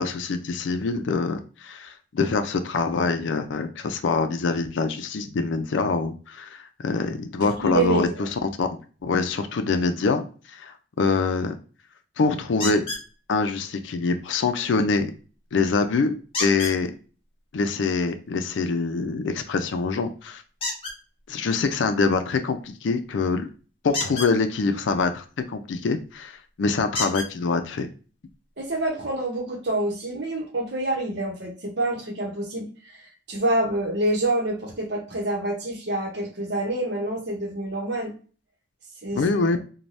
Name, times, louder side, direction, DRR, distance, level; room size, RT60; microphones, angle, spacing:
voice 1, 0.0-8.7 9.0-10.2 10.5-11.6 12.2-12.8 13.3-15.1 15.5-16.9 17.5-20.4 21.3-23.5 23.8-27.9 39.1-39.6, left 4 dB, 80° left, 8 dB, 0.4 m, -25 dB
voice 2, 7.4-8.3 28.6-33.0 33.3-38.1 39.0-39.2, right 1 dB, 65° right, 1 dB, 0.9 m, -27 dB
sound 1, 12.6-13.1 16.3-16.8 20.6-21.0 23.9-24.3 26.0-26.1 26.9-27.3 28.3-28.4 28.9-29.0, left 2 dB, 30° left, 0.7 m, -29 dB
3.2 x 2.2 x 2.5 m, 0.38 s
head